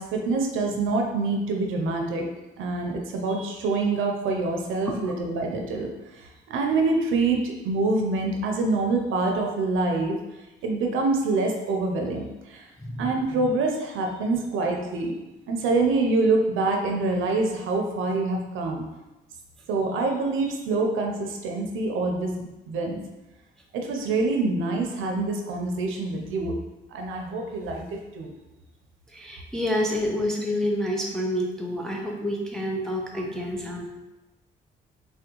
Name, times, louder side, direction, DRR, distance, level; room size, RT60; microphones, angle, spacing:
voice 1, 0.0-2.3 2.6-10.2 10.6-12.7 13.0-15.1 15.5-18.9 19.7-23.0 23.7-26.6 26.9-28.3, right 3 dB, 85° right, 2 dB, 0.5 m, -26 dB
voice 2, 12.8-13.4 29.1-33.9, left 1 dB, 5° left, 0 dB, 0.3 m, -28 dB
3.4 x 2.2 x 2.9 m, 1.0 s
cardioid pair, 90°, 20 cm